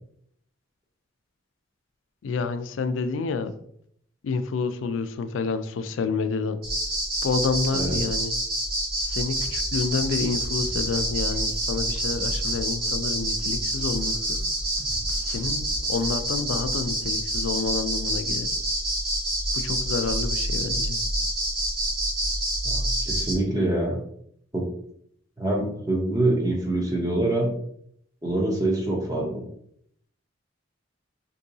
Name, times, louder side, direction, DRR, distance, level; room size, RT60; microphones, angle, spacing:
voice 1, 2.2-3.5 4.2-6.6 7.2-8.3 9.0-14.4 15.1-18.5 19.5-21.0, left 4 dB, 90° left, 10 dB, 0.4 m, -29 dB
sound 1, 6.6-23.3, right 1 dB, 50° right, 1.2 m, -27 dB
sound 2, 9.3-16.1, equal, 15° left, 0.8 m, -43 dB
voice 2, 22.6-24.0 24.5-24.7 25.4-27.5 28.2-29.4, right 2 dB, 20° right, 0 dB, 0.7 m, -25 dB
3.7 x 2.7 x 2.7 m, 0.68 s
head